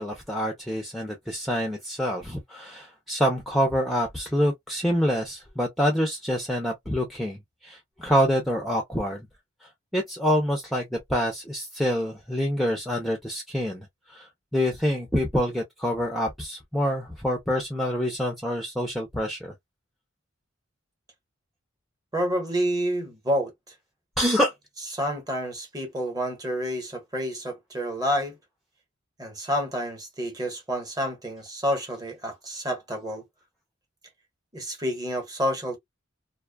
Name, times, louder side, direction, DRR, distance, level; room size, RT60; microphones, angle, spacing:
voice 1, 0.0-9.3 9.9-14.3 14.5-19.5 24.2-24.5, equal, ahead, 0.5 m, -26 dB
voice 2, 22.1-23.5 24.9-28.4 29.2-33.2 34.5-35.8, equal, 20° right, 1.0 m, -29 dB
2.5 x 2.2 x 2.2 m
head